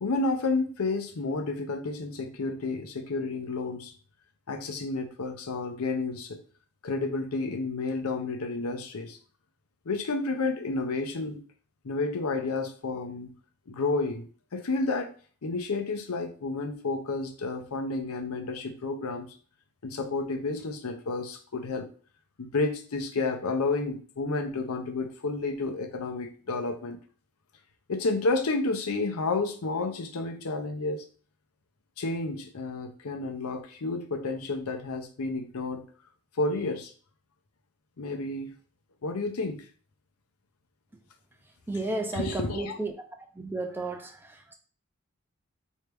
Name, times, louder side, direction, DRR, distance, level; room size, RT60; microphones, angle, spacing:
voice 1, 0.0-3.9 4.5-6.4 6.8-9.2 9.9-11.4 11.8-13.3 13.7-14.3 14.5-15.1 15.4-19.4 19.8-21.9 22.4-27.0 27.9-31.1 32.0-35.9 36.4-36.9 38.0-38.5 39.0-39.6 42.1-42.8, left 3 dB, 90° left, 0.6 m, -31 dB
voice 2, 41.7-42.9 43.3-44.5, right 2 dB, 10° right, 0.4 m, -33 dB
4.5 x 2.7 x 3.3 m
head